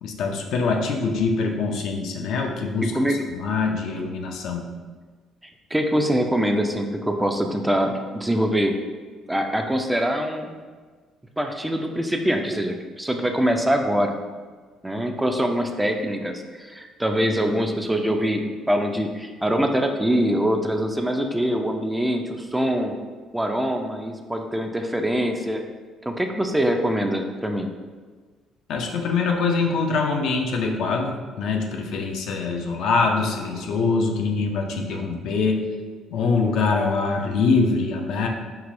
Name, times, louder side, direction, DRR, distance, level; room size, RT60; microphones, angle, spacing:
voice 1, 0.0-4.7 28.7-35.6 36.1-38.3, left 4 dB, 65° left, 2 dB, 0.4 m, -24 dB
voice 2, 5.7-8.7 9.3-10.6 11.4-14.1 14.8-23.0 23.3-25.6 26.1-27.7, equal, 10° right, 4 dB, 0.4 m, -24 dB
4.7 x 2.6 x 2.5 m, 1.5 s
hypercardioid pair, 50°, 0 cm